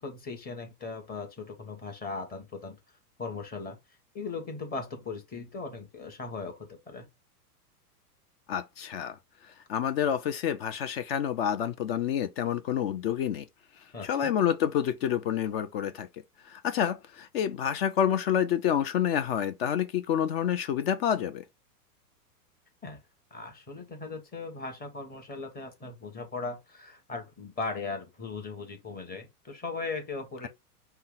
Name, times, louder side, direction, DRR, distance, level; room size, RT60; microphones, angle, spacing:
voice 1, 0.0-2.8 3.2-3.8 4.1-7.1 13.9-14.3 22.8-23.0 23.3-30.5, left 4 dB, 20° left, 1.4 m, -38 dB
voice 2, 8.5-9.2 9.7-13.5 14.0-16.1 16.4-21.4, left 9 dB, 40° left, 0.5 m, -28 dB
5.4 x 2.2 x 3.8 m
hypercardioid pair, 110°, 47 cm